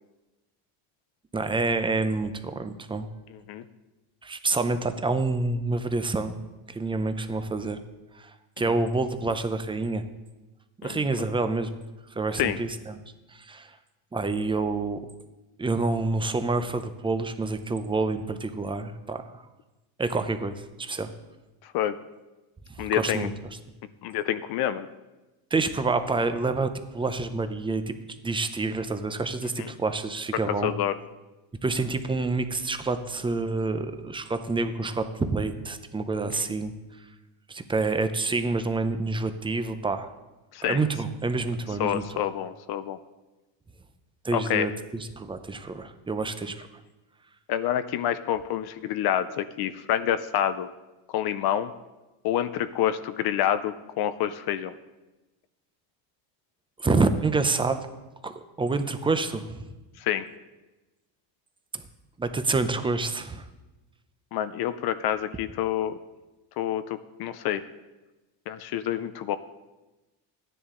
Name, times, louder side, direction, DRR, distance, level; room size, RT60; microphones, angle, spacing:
voice 1, 1.3-3.1 4.2-6.4 6.7-7.8 8.1-8.3 8.6-10.0 10.8-11.8 12.1-13.0 13.3-13.7 14.1-15.0 15.6-19.4 20.0-21.1 22.8-23.3 25.5-27.9 28.2-30.7 31.6-36.7 37.5-40.1 40.6-42.0 44.2-46.7 56.8-57.8 58.2-58.3 58.6-59.7 61.7-61.8 62.2-63.4, right 3 dB, 10° right, 9 dB, 0.6 m, -27 dB
voice 2, 10.8-11.2 12.4-12.6 21.6-22.0 22.8-23.3 24.0-24.9 29.6-29.7 30.5-30.9 40.5-40.8 41.8-43.0 44.3-44.7 47.5-50.7 51.1-51.7 52.2-54.7 60.0-60.3 64.3-66.0 66.6-67.6 68.5-69.4, left 11 dB, 50° left, 12 dB, 0.6 m, -27 dB
14.0 x 10.0 x 3.8 m, 1.1 s
cardioid pair, 130°, 48 cm